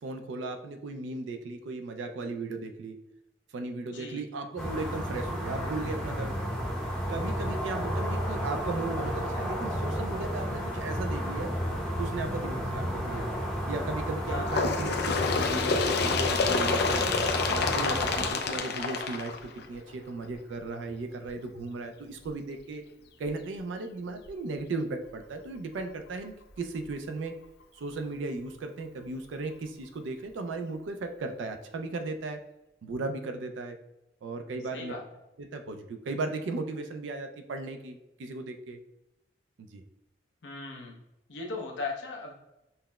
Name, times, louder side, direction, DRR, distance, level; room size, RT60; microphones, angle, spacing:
voice 1, 0.0-3.0 3.5-6.4 7.1-11.5 12.0-13.3 13.7-17.1 17.5-22.9 23.2-27.4 27.7-32.4 32.8-33.8 34.2-34.9 35.4-38.8 39.6-39.8, right 3 dB, 90° right, 6 dB, 0.3 m, -36 dB
sound 1, 4.6-18.3, equal, 5° left, 0.6 m, -32 dB
Bird, 14.5-19.9 20.8-20.9 21.3-21.4 22.3-22.4 23.3-23.4 24.3-24.4, left 4 dB, 60° left, 0.4 m, -28 dB
voice 2, 34.7-35.0 40.4-41.0 41.3-42.3, left 3 dB, 85° left, 0 dB, 0.7 m, -37 dB
5.5 x 2.0 x 2.2 m, 0.92 s
head